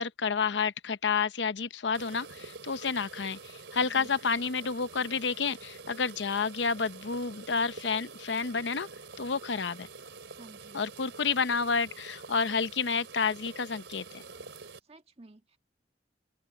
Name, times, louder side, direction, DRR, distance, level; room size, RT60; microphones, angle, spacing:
voice 1, 0.0-8.9 9.2-9.9 10.7-14.2, left 5 dB, 80° left, 0.8 m, -30 dB
sound 1, 1.9-14.8, right 4 dB, 90° right, 3.5 m, -47 dB
voice 2, 3.8-4.2 10.4-10.8 14.8-15.6, right 2 dB, 35° right, 1.7 m, -53 dB
open air
head